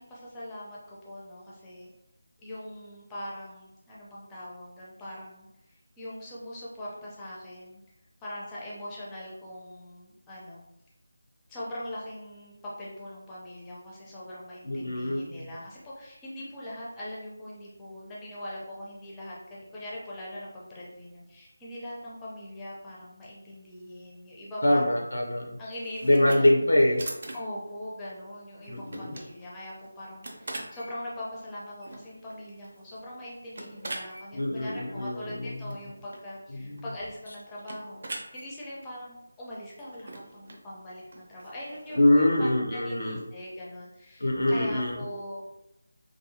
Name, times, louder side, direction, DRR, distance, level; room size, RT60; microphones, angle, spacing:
voice 1, 0.0-1.9 2.4-7.8 8.2-10.6 11.5-25.1 25.6-26.5 27.3-45.5, left 1 dB, 10° left, -7 dB, 0.6 m, -41 dB
voice 2, 14.7-15.3 24.6-25.6 26.0-27.0 28.7-29.2 34.3-35.6 36.5-36.8 42.0-43.2 44.2-45.0, left 1 dB, 85° left, 1 dB, 0.5 m, -24 dB
sound 1, 25.7-42.2, right 2 dB, 50° right, 0.5 m, -44 dB
2.7 x 2.4 x 2.7 m, 0.89 s
figure-of-eight pair, 170°, 0 cm